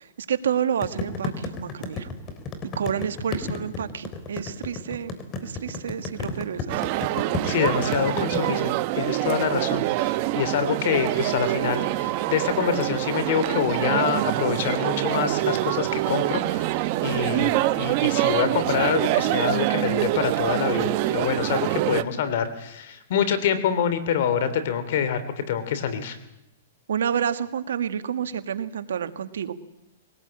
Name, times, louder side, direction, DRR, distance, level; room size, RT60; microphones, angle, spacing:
voice 1, 0.0-2.1 2.8-5.1 5.4-6.8 7.8-8.1 26.9-29.6, right 8 dB, 80° right, 10 dB, 1.6 m, -29 dB
sound 1, 0.8-8.4, left 3 dB, 30° left, 3.6 m, -32 dB
sound 2, 6.7-22.0, right 16 dB, 45° right, 1.1 m, -25 dB
voice 2, 7.4-26.2, left 8 dB, 60° left, 12 dB, 3.1 m, -26 dB
22.0 x 18.5 x 8.8 m, 0.89 s
hypercardioid pair, 135°, 0 cm